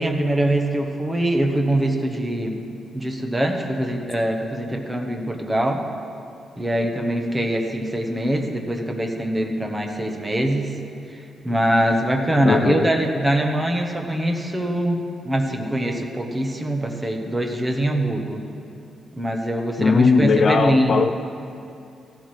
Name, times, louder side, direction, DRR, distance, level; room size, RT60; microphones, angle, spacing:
voice 1, 0.0-2.7 2.9-5.8 6.6-10.7 11.1-18.4 19.1-21.0, right 1 dB, 10° right, 3 dB, 0.9 m, -23 dB
voice 2, 12.4-12.9 19.8-21.1, left 5 dB, 40° left, 7 dB, 0.3 m, -18 dB
15.0 x 12.5 x 3.2 m, 2.6 s
wide cardioid pair, 155°, 0 cm